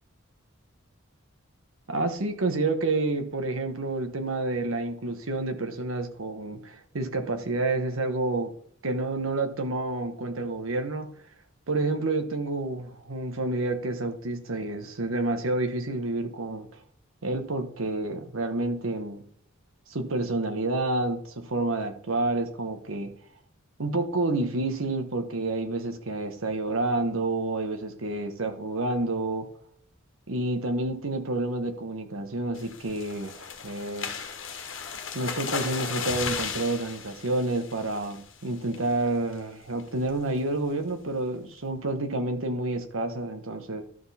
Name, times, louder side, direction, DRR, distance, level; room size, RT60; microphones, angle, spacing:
voice 1, 1.9-8.5 8.8-11.1 11.7-16.7 17.2-19.2 19.9-23.1 23.8-29.5 30.3-34.1 35.1-43.8, right 2 dB, 70° right, 7 dB, 1.1 m, -29 dB
sound 1, 32.5-38.3 38.7-39.0 39.3-39.4 39.8-40.1, left 6 dB, 65° left, 1.5 m, -35 dB
12.0 x 6.1 x 4.2 m, 0.63 s
head